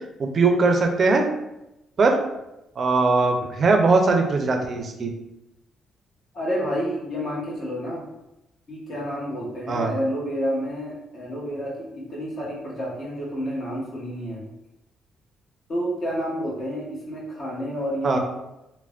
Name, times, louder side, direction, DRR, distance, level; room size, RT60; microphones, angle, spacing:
voice 1, 0.2-1.2 2.0-2.2 2.8-5.1 9.7-9.9 18.0-18.2, right 3 dB, 45° right, 4 dB, 0.5 m, -20 dB
voice 2, 6.3-8.0 8.7-14.4 15.7-18.2, equal, 50° left, -4 dB, 1.1 m, -29 dB
3.3 x 2.1 x 2.4 m, 0.90 s
cardioid pair, 90°, 0 cm